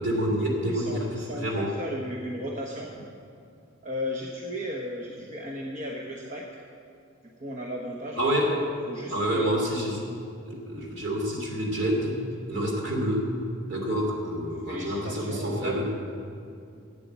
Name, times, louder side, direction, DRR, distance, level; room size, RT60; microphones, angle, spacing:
voice 1, 0.0-1.7 8.2-8.6 9.1-10.0 10.5-12.2 12.5-13.3 13.7-15.9, equal, 60° right, -1 dB, 2.9 m, -28 dB
voice 2, 0.6-2.9 3.8-6.5 7.4-8.5 8.9-9.6 14.6-15.9, equal, 40° right, -1 dB, 1.0 m, -35 dB
12.0 x 8.5 x 8.0 m, 2.4 s
head